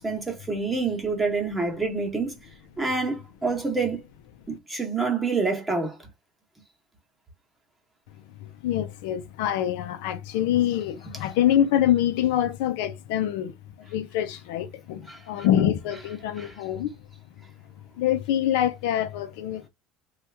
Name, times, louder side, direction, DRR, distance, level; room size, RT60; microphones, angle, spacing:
voice 1, 0.0-2.4 2.8-4.0 4.5-6.0 15.1-15.2 16.4-16.5, right 4 dB, 10° right, 1.0 m, -27 dB
voice 2, 8.4-13.5 13.8-16.9 18.0-19.7, left 11 dB, 85° left, 0.5 m, -25 dB
2.9 x 2.4 x 3.3 m
cardioid pair, 155°, 0 cm